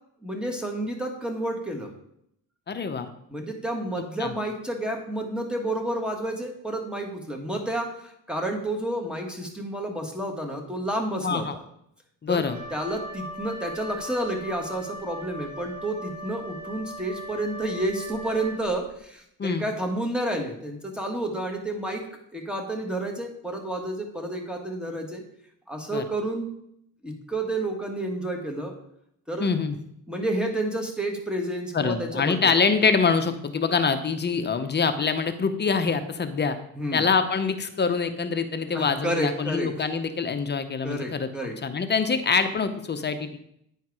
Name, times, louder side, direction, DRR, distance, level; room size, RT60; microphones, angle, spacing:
voice 1, 0.2-1.9 3.3-11.5 12.3-22.1 22.3-25.2 25.7-26.5 27.0-28.7 29.3-29.5 30.1-32.5 36.8-37.0 38.7-39.7 40.8-41.6, right 1 dB, ahead, 2 dB, 1.4 m, -30 dB
voice 2, 2.7-3.1 4.2-4.3 11.2-11.6 12.2-12.6 19.4-19.6 25.9-26.0 29.4-29.8 31.7-36.6 36.9-41.3 41.6-43.4, left 5 dB, 30° left, 9 dB, 0.6 m, -25 dB
Wind instrument woodwind instrument, 12.4-19.0, equal, 40° right, 3.1 m, -39 dB
9.8 x 4.6 x 4.7 m, 0.74 s
cardioid pair, 120°, 38 cm